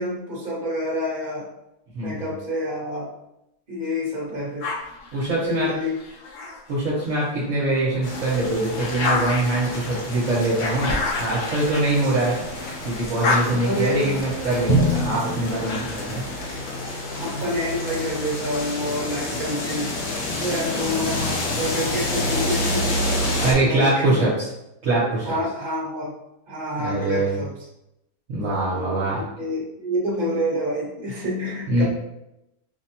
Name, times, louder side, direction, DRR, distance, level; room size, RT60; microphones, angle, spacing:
voice 1, 0.0-1.5 2.0-3.1 3.7-4.7 5.4-6.0 7.6-7.7 13.5-14.2 17.1-19.9 20.4-24.2 25.2-26.1 26.5-27.5 28.7-31.8, left 1 dB, 35° right, -4 dB, 1.1 m, -28 dB
voice 2, 1.9-2.3 5.1-5.7 6.7-12.4 12.8-16.2 23.4-24.3 24.8-25.3 26.8-27.4 28.3-29.2 31.7-31.8, right 2 dB, 60° right, -7 dB, 1.2 m, -23 dB
sound 1, 4.6-7.3 7.8-12.6 12.9-16.2, left 3 dB, 65° left, 0.9 m, -30 dB
Rain With Cars, 8.0-23.5, left 1 dB, 85° left, 1.4 m, -29 dB
Drum, 14.7-16.7, equal, 30° left, 1.1 m, -25 dB
5.1 x 2.2 x 2.8 m, 0.87 s
omnidirectional pair, 1.6 m